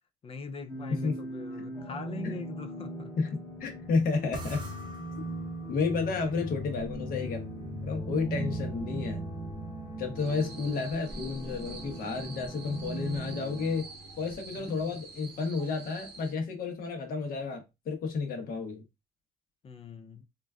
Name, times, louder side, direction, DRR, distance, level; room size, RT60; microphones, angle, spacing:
voice 1, 0.2-3.1 6.2-6.5 8.3-8.4 10.2-10.5 14.5-15.0 19.6-20.2, left 5 dB, 35° left, 0.4 m, -43 dB
sound 1, 0.7-13.8, right 2 dB, 15° left, 0.9 m, -40 dB
voice 2, 3.2-4.6 5.7-7.4 7.8-9.3 10.0-13.9 14.2-18.8, left 4 dB, 60° left, 1.0 m, -31 dB
sound 2, 4.3-14.9, left 1 dB, 25° right, 0.6 m, -43 dB
sound 3, 10.2-16.3, right 4 dB, 85° right, 1.1 m, -47 dB
3.8 x 2.4 x 2.3 m
cardioid pair, 110°, 17 cm